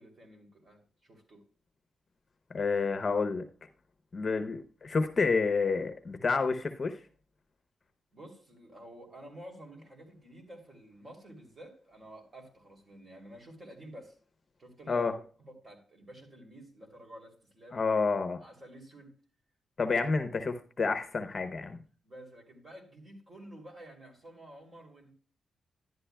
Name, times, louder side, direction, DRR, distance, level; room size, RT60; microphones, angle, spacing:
voice 1, 0.0-1.4 8.1-14.2 14.6-15.1 15.4-17.8 18.4-19.2 22.0-25.1, right 1 dB, 35° right, 2.9 m, -50 dB
voice 2, 2.5-3.4 4.1-7.0 14.9-15.1 17.7-18.4 19.8-21.8, left 4 dB, 35° left, 0.8 m, -29 dB
11.5 x 11.0 x 2.3 m
cardioid pair, 115°, 0 cm